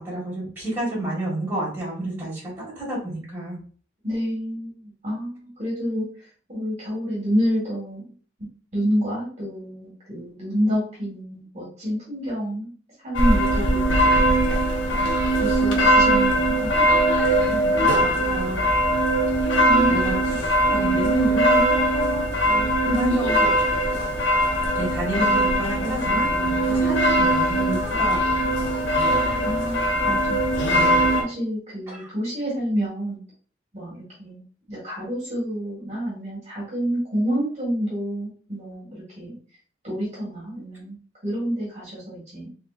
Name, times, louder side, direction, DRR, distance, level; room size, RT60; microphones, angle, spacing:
voice 1, 0.0-3.5 17.4-18.6 19.9-21.7 21.9-23.5 24.8-26.3 26.7-28.5 31.9-32.1, right 1 dB, 10° right, -7 dB, 1.9 m, -30 dB
voice 2, 4.0-8.0 8.7-12.7 13.0-14.4 14.9-15.1 15.4-17.0 19.6-20.3 29.4-30.6 31.2-33.2 33.7-39.4 39.8-41.0 41.2-42.5, equal, 35° right, -5 dB, 1.6 m, -28 dB
sound 1, 13.1-31.2, right 1 dB, 70° left, 0.8 m, -20 dB
3.6 x 3.4 x 2.5 m, 0.43 s
head